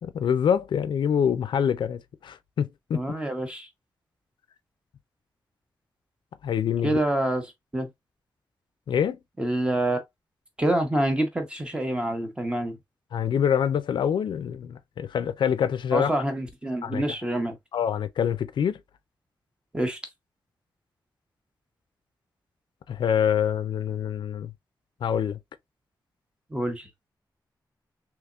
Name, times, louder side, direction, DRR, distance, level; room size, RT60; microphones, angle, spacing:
voice 1, 0.0-3.0 6.4-7.0 8.9-9.2 13.1-16.1 16.8-17.0 17.7-18.8 22.9-24.5 25.0-25.4, left 8 dB, 85° left, 0.4 m, -25 dB
voice 2, 2.9-3.7 6.8-7.4 7.7-7.9 9.4-10.0 10.6-12.8 15.9-17.6 19.7-20.0 26.5-26.9, right 1 dB, 15° right, 0.8 m, -26 dB
3.5 x 2.9 x 2.3 m
wide cardioid pair, 160°, 8 cm